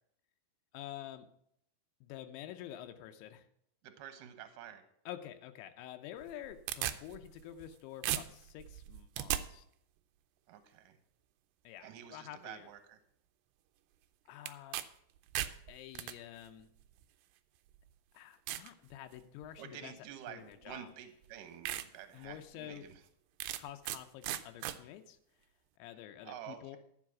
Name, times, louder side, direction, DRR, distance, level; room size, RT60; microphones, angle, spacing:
voice 1, 0.7-1.3 2.0-3.5 5.1-9.7 11.6-12.7 14.3-14.8 15.7-16.7 18.1-19.9 20.3-20.9 22.1-22.9 23.5-25.2 25.8-26.8, left 12 dB, 90° left, 7 dB, 3.1 m, -48 dB
voice 2, 3.8-4.8 10.5-11.0 11.8-13.0 19.6-23.0 26.2-26.8, right 10 dB, 65° right, 8 dB, 2.2 m, -49 dB
sound 1, 6.2-7.7 8.0-9.4 14.5-14.9 15.2-16.1 17.0-17.1 17.7-17.8 18.5-18.7 19.2-19.6 20.7-20.8 21.2-21.3 21.7-21.9 22.3-22.4 23.4-24.0 24.2-24.8, right 13 dB, 85° right, 2.3 m, -37 dB
12.5 x 7.3 x 6.0 m, 0.71 s
omnidirectional pair, 5.1 m